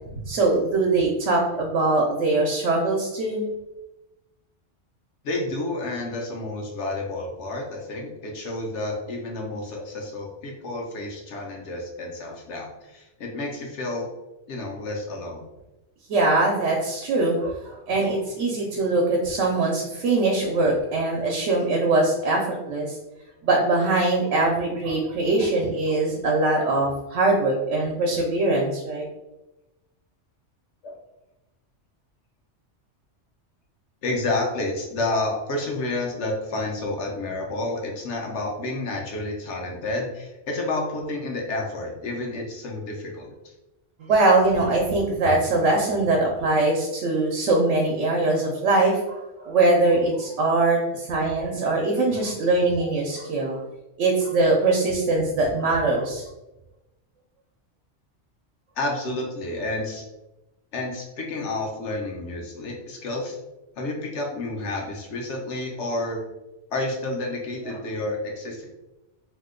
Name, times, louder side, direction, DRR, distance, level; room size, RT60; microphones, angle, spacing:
voice 1, 0.1-3.5 16.1-23.0 23.4-29.1 44.0-53.6 54.0-56.3, right 2 dB, 85° right, 0 dB, 0.9 m, -22 dB
voice 2, 5.2-14.1 14.5-15.4 30.8-31.0 34.0-43.3 58.8-60.0 60.7-63.4 63.8-66.2 66.7-68.6, left 2 dB, 75° left, 0 dB, 1.0 m, -30 dB
2.7 x 2.1 x 3.6 m, 0.99 s
omnidirectional pair, 1.2 m